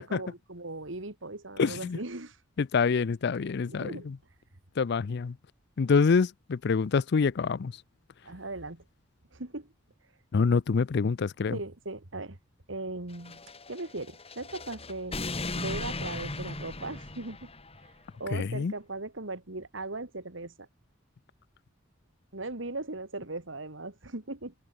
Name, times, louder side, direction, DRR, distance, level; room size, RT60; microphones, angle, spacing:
voice 1, 0.0-2.4 3.7-4.1 8.2-8.8 9.3-9.7 11.5-12.4 12.7-13.4 13.7-15.2 15.6-17.5 18.2-20.7 22.3-24.5, right 2 dB, 70° right, 2.4 m, -38 dB
voice 2, 1.6-2.0 2.6-4.2 4.8-5.4 5.8-7.7 10.3-11.6 18.3-18.7, left 5 dB, 55° left, 0.4 m, -26 dB
sound 1, 13.1-17.9, left 2 dB, 30° left, 5.5 m, -37 dB
head